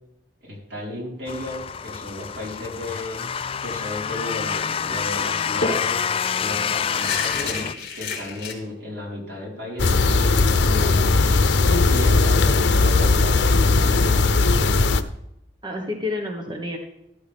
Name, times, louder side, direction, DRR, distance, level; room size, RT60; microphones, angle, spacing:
voice 1, 0.4-3.2 3.6-6.1 6.4-10.4 11.9-14.3, left 1 dB, 75° right, -3 dB, 4.9 m, -34 dB
sound 1, 1.3-7.7, left 7 dB, 30° left, 0.3 m, -27 dB
sound 2, 4.5-4.7 5.0-5.1 5.6-8.5, left 4 dB, 60° left, 3.6 m, -30 dB
sound 3, 9.8-15.0, left 3 dB, 85° left, 0.8 m, -18 dB
voice 2, 10.6-11.4 15.6-16.8, left 2 dB, 25° right, 2 dB, 1.4 m, -30 dB
13.0 x 12.5 x 3.5 m, 0.81 s
head